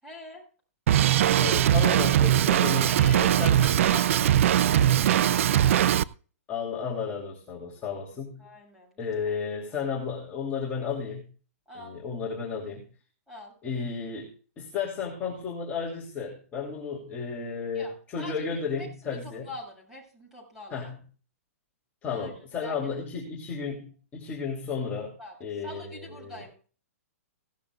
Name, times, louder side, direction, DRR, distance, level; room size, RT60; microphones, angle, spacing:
voice 1, 0.0-0.5 2.7-6.0 8.4-9.4 11.7-12.0 13.3-13.5 17.7-18.5 18.8-20.9 22.0-22.3 22.6-22.8 25.2-25.3 25.6-26.5, left 1 dB, 5° right, -1 dB, 8.0 m, -44 dB
Drum kit, 0.9-6.0, right 11 dB, 60° right, 0.5 m, -21 dB
voice 2, 1.3-3.6 6.5-8.5 9.0-11.3 11.7-12.9 13.6-19.5 20.7-21.0 22.0-26.4, left 5 dB, 20° left, -4 dB, 2.9 m, -33 dB
17.0 x 13.5 x 2.4 m, 0.39 s
hypercardioid pair, 145°, 8 cm